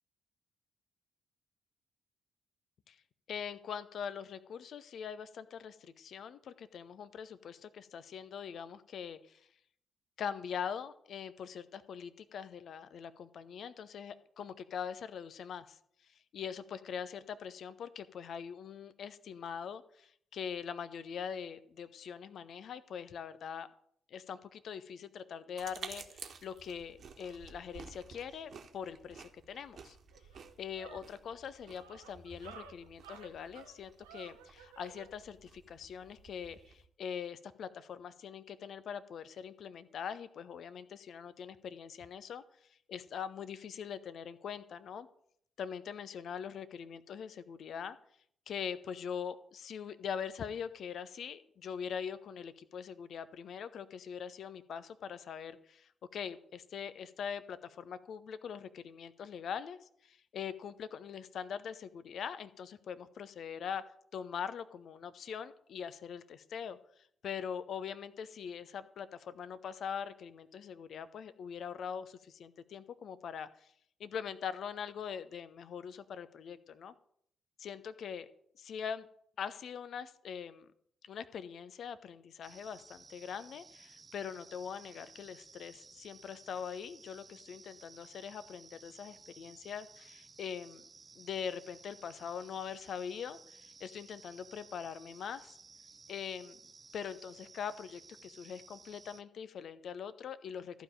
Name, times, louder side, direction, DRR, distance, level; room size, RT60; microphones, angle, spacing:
voice 1, 3.3-9.4 10.2-15.8 16.3-23.7 24.1-30.0 30.6-42.4 42.9-45.1 45.6-48.0 48.5-63.8 64.1-66.8 67.2-73.7 74.0-76.9 77.6-78.3 78.6-79.1 79.4-80.7 81.0-90.8 91.1-95.5 96.1-96.6 96.9-100.8, left 7 dB, 55° left, 14 dB, 0.7 m, -42 dB
sound 1, 25.6-36.9, right 5 dB, 50° right, 1.3 m, -53 dB
sound 2, 29.6-29.7 30.1-35.1, right 7 dB, 80° right, 0.8 m, -54 dB
sound 3, 82.4-99.2, right 4 dB, 35° right, 0.6 m, -57 dB
14.5 x 5.1 x 8.9 m, 0.67 s
figure-of-eight pair, 40°, 0 cm